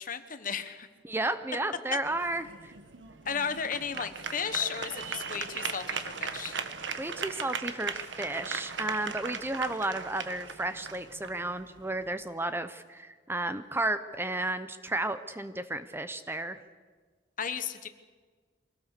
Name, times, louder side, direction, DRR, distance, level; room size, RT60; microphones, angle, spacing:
voice 1, 0.0-0.9 3.2-6.5 17.4-17.9, left 7 dB, 45° left, 10 dB, 1.2 m, -34 dB
voice 2, 1.0-2.7 7.0-16.6, right 2 dB, 15° right, 11 dB, 0.7 m, -33 dB
sound 1, 2.1-12.1, right 5 dB, 85° right, 1.3 m, -38 dB
24.0 x 18.0 x 6.8 m, 1.5 s
head